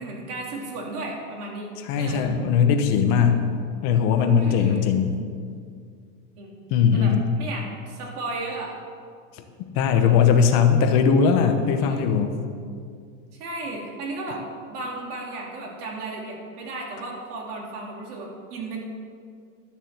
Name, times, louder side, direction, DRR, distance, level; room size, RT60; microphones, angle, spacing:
voice 1, 0.0-1.7 2.0-2.3 4.3-4.9 6.4-6.5 6.9-8.8 9.9-10.3 11.7-12.1 13.4-14.4 14.7-18.8, right 2 dB, 80° right, -2 dB, 3.8 m, -34 dB
voice 2, 1.8-3.4 3.8-5.2 6.7-7.3 9.7-12.3, left 6 dB, 35° left, 6 dB, 0.9 m, -19 dB
12.5 x 7.3 x 8.0 m, 2.2 s
supercardioid pair, 170°, 45 cm